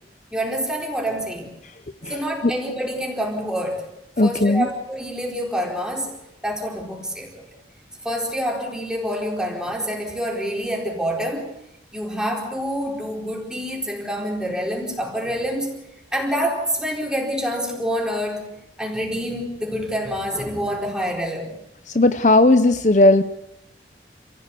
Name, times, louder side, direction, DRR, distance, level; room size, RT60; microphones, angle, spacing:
voice 1, 0.3-1.5 2.1-3.9 4.2-7.5 8.0-11.5 11.9-15.8 16.1-18.5 18.8-21.6, equal, 5° right, 0 dB, 4.4 m, -27 dB
voice 2, 2.0-2.5 4.2-4.7 21.9-23.2, left 2 dB, 40° left, 10 dB, 0.8 m, -16 dB
28.5 x 16.5 x 8.4 m, 0.85 s
head